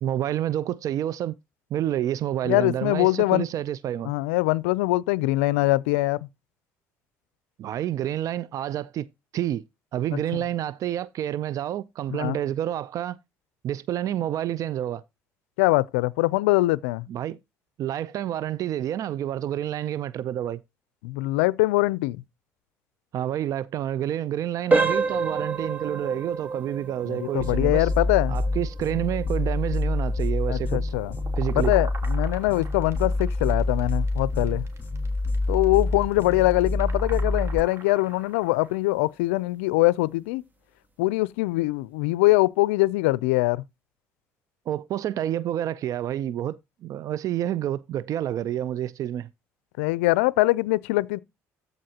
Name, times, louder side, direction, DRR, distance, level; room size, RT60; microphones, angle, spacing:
voice 1, 0.0-1.3 1.7-4.1 7.6-9.1 9.3-9.6 9.9-13.2 13.6-15.0 17.1-17.4 17.8-20.6 23.1-27.9 28.3-30.9 31.4-31.8 44.7-49.3, right 11 dB, 60° right, 0.4 m, -29 dB
voice 2, 2.4-3.5 4.1-6.2 12.1-12.4 15.6-17.1 21.0-22.2 27.1-28.3 30.5-31.1 31.5-34.7 35.5-40.4 41.0-43.6 49.8-51.2, left 20 dB, 90° left, 0.4 m, -23 dB
sound 1, 24.7-35.4 35.7-36.0 36.5-36.6 37.1-37.3, right 4 dB, 25° right, 2.3 m, -31 dB
sound 2, 27.4-37.6, left 2 dB, 30° left, 1.9 m, -27 dB
sound 3, 30.7-38.8, right 3 dB, 40° right, 3.1 m, -45 dB
14.0 x 5.2 x 2.8 m
supercardioid pair, 75°, 7 cm